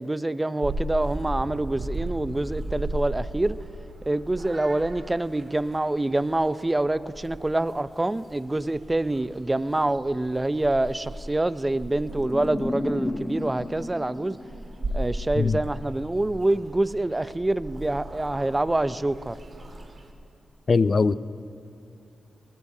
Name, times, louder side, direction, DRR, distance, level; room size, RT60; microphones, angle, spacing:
voice 1, 0.0-3.6 4.1-14.4 14.9-19.4, right 2 dB, 20° right, 0.5 m, -26 dB
Purr / Meow, 0.6-20.1, right 1 dB, 45° right, 1.9 m, -37 dB
sound 1, 12.1-15.2, left 1 dB, 20° left, 0.9 m, -33 dB
voice 2, 20.7-21.2, left 4 dB, 50° left, 0.4 m, -20 dB
20.0 x 19.5 x 2.8 m
cardioid pair, 65°, 0 cm